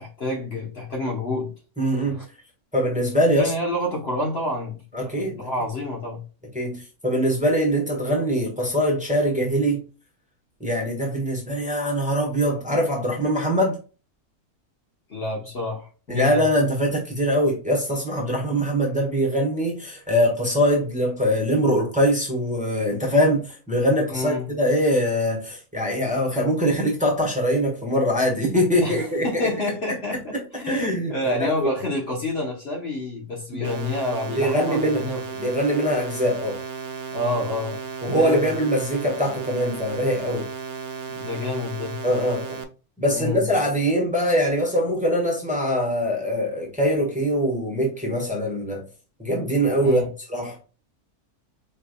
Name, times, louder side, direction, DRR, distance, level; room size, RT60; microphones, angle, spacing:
voice 1, 0.0-1.5 2.0-2.2 3.4-6.2 15.1-16.4 24.1-24.5 28.8-35.2 37.1-38.4 41.1-42.0 43.1-43.5 49.8-50.1, left 2 dB, 45° left, 1.1 m, -29 dB
voice 2, 1.8-2.2 2.7-3.5 4.9-5.4 6.5-9.8 10.6-13.8 16.1-29.5 30.7-31.7 33.5-33.7 34.3-35.1 35.4-36.6 38.0-40.5 42.0-42.6 43.0-48.8 49.2-50.0 50.3-50.6, equal, 5° right, 1.2 m, -23 dB
sound 1, 33.6-42.6, right 6 dB, 85° right, 0.3 m, -35 dB
4.6 x 3.4 x 2.2 m
omnidirectional pair, 1.6 m